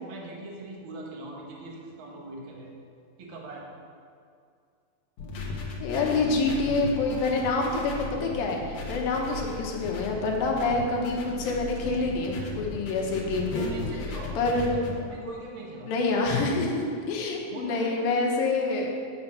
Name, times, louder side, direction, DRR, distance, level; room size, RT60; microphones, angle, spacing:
voice 1, 0.0-2.7 3.2-3.7 13.0-13.1 13.5-14.4 15.0-15.9 17.5-18.1, right 2 dB, 75° right, -2 dB, 1.1 m, -41 dB
sound 1, 5.2-14.9, left 3 dB, 65° left, 2.1 m, -36 dB
voice 2, 5.8-13.7 14.4-14.8 15.9-18.9, left 3 dB, 80° left, 0 dB, 2.8 m, -27 dB
8.4 x 7.0 x 5.7 m, 2.3 s
omnidirectional pair, 4.2 m